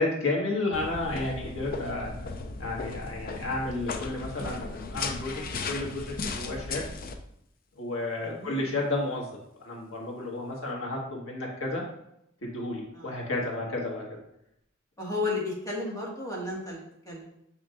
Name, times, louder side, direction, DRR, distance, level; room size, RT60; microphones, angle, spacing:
voice 1, 0.0-2.1 2.6-6.8 7.8-9.3 9.6-11.8 12.4-14.1, left 2 dB, 90° left, -2 dB, 1.6 m, -32 dB
sound 1, 0.7-7.1, left 4 dB, 45° left, 0.5 m, -36 dB
voice 2, 5.3-5.7 8.2-8.7 12.9-13.2 15.0-17.3, left 3 dB, 15° left, -5 dB, 1.8 m, -34 dB
6.9 x 5.9 x 2.5 m, 0.76 s
head